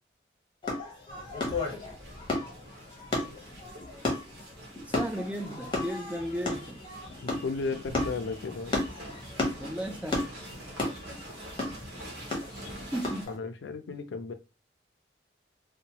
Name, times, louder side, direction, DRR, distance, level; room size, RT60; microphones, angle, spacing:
sound 1, 0.6-13.3, left 2 dB, 25° left, 0.8 m, -34 dB
sound 2, 1.1-13.3, right 1 dB, 60° right, 1.1 m, -47 dB
voice 1, 4.9-6.8 9.6-10.3 12.7-13.3, equal, 5° right, 0.3 m, -35 dB
sound 3, 6.1-13.1, equal, 25° right, 1.0 m, -52 dB
voice 2, 7.2-8.8 13.3-14.3, left 4 dB, 80° left, 0.4 m, -34 dB
2.8 x 2.1 x 2.8 m
head